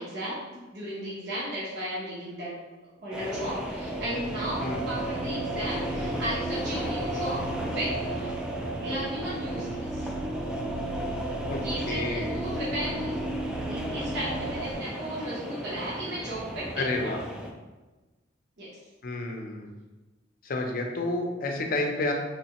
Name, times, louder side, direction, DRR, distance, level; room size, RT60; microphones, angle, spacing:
voice 1, 0.0-2.6 3.0-8.4 8.8-10.1 11.6-13.2 13.7-16.7 17.0-17.2 18.6-18.7, right 1 dB, 60° right, -9 dB, 0.9 m, -35 dB
sound 1, 3.1-17.5, equal, 5° right, 0.3 m, -36 dB
sound 2, 3.2-14.7, right 2 dB, 90° right, 1.1 m, -34 dB
voice 2, 11.9-12.4 16.8-17.2 19.0-19.7 20.4-22.1, left 2 dB, 50° left, 2 dB, 0.5 m, -30 dB
3.3 x 3.2 x 2.9 m, 1.2 s
head